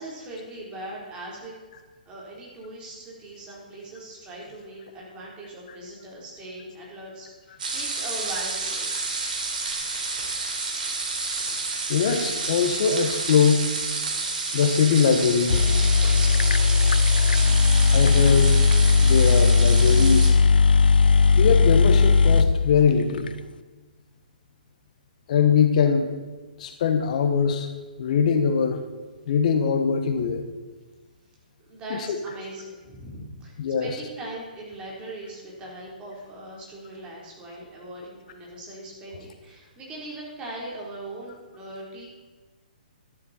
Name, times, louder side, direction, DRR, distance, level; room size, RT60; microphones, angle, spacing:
voice 1, 0.0-1.5 2.1-9.1 30.2-30.3 31.7-42.1, right 1 dB, 20° right, -4 dB, 3.8 m, -40 dB
sound 1, 7.6-20.3, right 3 dB, 65° right, 3.7 m, -30 dB
voice 2, 11.9-13.7 14.5-15.6 16.0-16.2 17.9-18.6 19.0-20.3 21.4-23.3 25.3-26.1 26.6-27.7 28.0-28.8 29.3-30.4 31.9-32.2 33.6-34.0, left 6 dB, 50° left, 7 dB, 1.2 m, -22 dB
sound 2, 15.2-15.3 15.5-23.3, left 5 dB, 80° left, 0.5 m, -18 dB
12.5 x 11.5 x 4.3 m, 1.3 s
hypercardioid pair, 140°, 5 cm